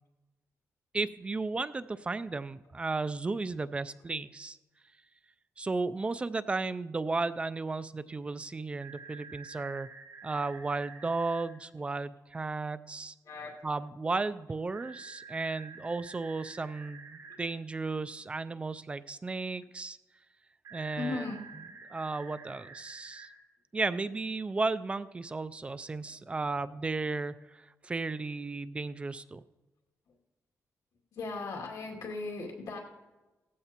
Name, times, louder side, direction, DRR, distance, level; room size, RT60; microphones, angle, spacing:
voice 1, 0.9-4.6 5.6-9.9 10.2-13.1 13.6-20.0 20.7-21.2 21.9-23.3 23.7-29.4, right 3 dB, 20° right, 14 dB, 0.3 m, -34 dB
sound 1, 8.8-11.4 14.7-17.4 20.6-23.3, right 5 dB, 80° right, 3.4 m, -49 dB
voice 2, 13.2-13.6 17.4-17.5 21.0-21.4 31.1-32.8, left 3 dB, 80° left, -1 dB, 2.3 m, -37 dB
17.5 x 15.0 x 2.9 m, 1.1 s
wide cardioid pair, 160°, 6 cm